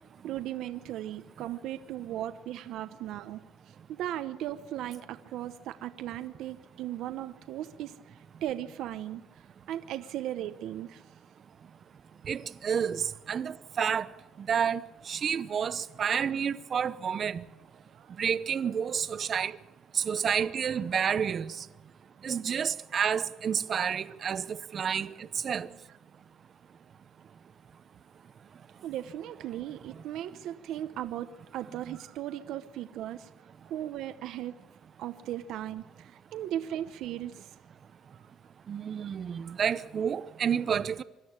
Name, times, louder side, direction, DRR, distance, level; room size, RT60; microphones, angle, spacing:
voice 1, 0.2-11.0 17.9-18.1 28.8-33.3 33.6-34.5 35.0-37.6 39.4-39.6, right 12 dB, 70° right, 0.9 m, -37 dB
voice 2, 12.3-14.1 14.4-14.8 15.1-17.4 18.2-19.5 19.9-21.5 22.2-25.1 25.4-25.7 38.7-41.0, right 7 dB, 40° right, 0.9 m, -29 dB
24.5 x 13.0 x 8.8 m
cardioid pair, 120°, 0 cm